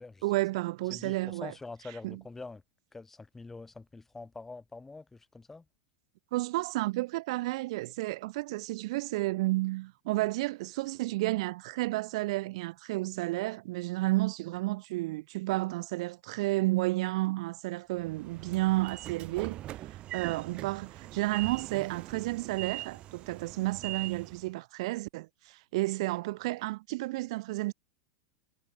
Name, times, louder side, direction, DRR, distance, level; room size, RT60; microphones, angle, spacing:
voice 1, 0.2-1.5 2.0-2.2 6.3-19.6 19.9-27.7, right 20 dB, 60° right, 0.7 m, -31 dB
voice 2, 0.9-2.6 2.9-5.6, left 3 dB, 10° left, 4.3 m, -45 dB
Train / Sliding door, 18.0-24.5, right 14 dB, 30° right, 0.9 m, -42 dB
supercardioid pair, 155°, 3 cm